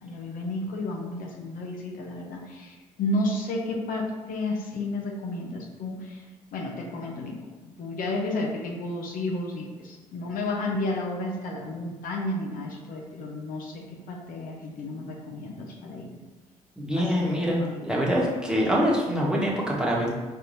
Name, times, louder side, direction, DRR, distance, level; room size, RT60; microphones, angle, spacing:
voice 1, 0.0-6.2 6.5-7.3 7.6-16.1 16.8-17.9, left 2 dB, 65° left, -1 dB, 0.7 m, -32 dB
voice 2, 16.8-20.1, equal, 5° right, -4 dB, 1.2 m, -25 dB
4.3 x 3.4 x 2.6 m, 1.2 s
hypercardioid pair, 55°, 16 cm